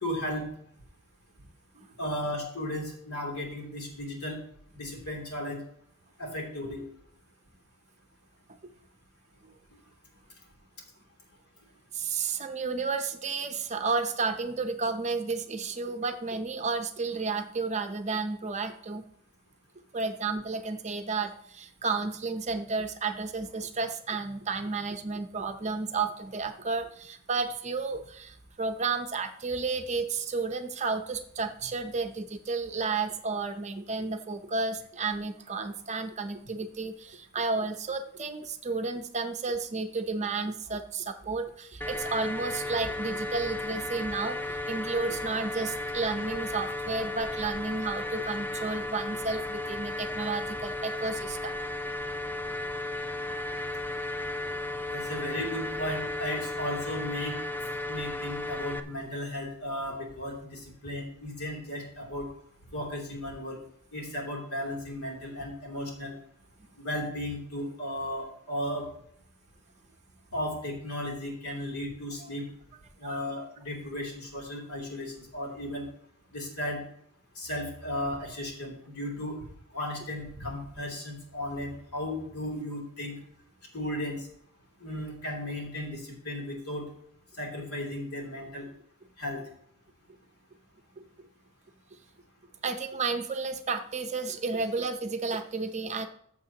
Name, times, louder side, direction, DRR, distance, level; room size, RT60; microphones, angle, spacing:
voice 1, 0.0-0.5 2.0-4.4 4.7-5.6 6.2-6.9 54.9-57.4 57.9-62.3 62.7-63.6 63.9-66.1 66.8-68.9 70.3-72.4 73.0-75.9 76.3-76.8 77.4-79.4 79.7-83.1 83.7-84.3 84.8-86.8 87.4-88.7 89.2-89.4, left 1 dB, 75° left, -1 dB, 3.0 m, -35 dB
voice 2, 11.9-19.0 19.9-51.5 72.2-72.3 73.0-73.2 91.2-91.3 92.6-96.1, right 4 dB, 30° right, 7 dB, 0.7 m, -32 dB
sound 1, 41.8-58.8, left 2 dB, 10° left, 0.3 m, -34 dB
14.5 x 7.2 x 2.9 m, 0.69 s
head